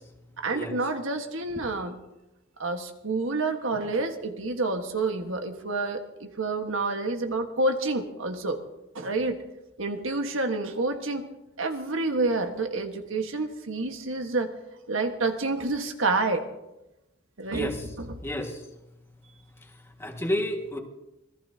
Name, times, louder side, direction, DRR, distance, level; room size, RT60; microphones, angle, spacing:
voice 1, 0.4-2.0 2.6-8.6 8.9-9.4 9.8-11.3 11.6-14.5 14.9-16.4 17.4-18.2, right 3 dB, 80° right, 5 dB, 1.6 m, -28 dB
voice 2, 18.2-18.6 20.0-20.8, left 1 dB, 15° left, 1 dB, 1.8 m, -30 dB
26.5 x 18.0 x 2.9 m, 0.94 s
head